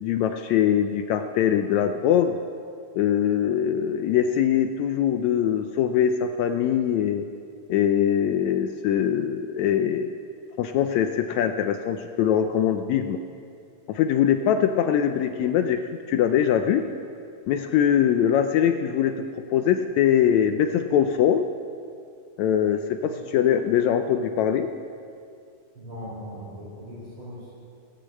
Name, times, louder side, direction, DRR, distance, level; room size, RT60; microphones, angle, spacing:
voice 1, 0.0-2.4 2.9-7.2 7.7-10.1 10.6-13.2 13.9-15.8 16.1-16.9 17.5-21.5 22.4-24.7, left 9 dB, 80° left, 7 dB, 1.6 m, -22 dB
voice 2, 25.7-27.5, equal, 40° right, -12 dB, 6.0 m, -39 dB
16.5 x 9.9 x 7.5 m, 2.4 s
omnidirectional pair, 3.8 m